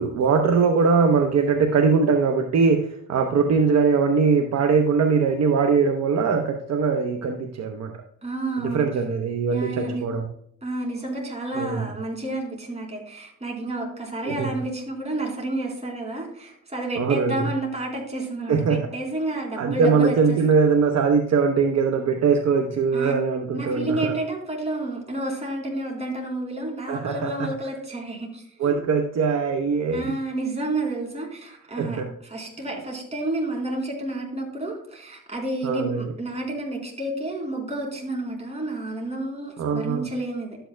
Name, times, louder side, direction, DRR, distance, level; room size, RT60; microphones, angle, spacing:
voice 1, 0.0-7.9 8.6-10.2 11.5-11.9 14.2-14.5 17.0-17.5 18.5-18.8 19.6-24.1 26.9-27.5 28.6-30.2 31.8-32.1 35.6-36.1 39.6-40.0, right 5 dB, 60° right, 4 dB, 0.9 m, -21 dB
voice 2, 8.2-8.9 9.5-10.0 10.6-20.4 22.9-23.1 23.5-28.8 29.9-40.6, right 2 dB, 20° right, -1 dB, 3.8 m, -30 dB
12.5 x 8.9 x 2.2 m, 0.69 s
cardioid pair, 90°, 30 cm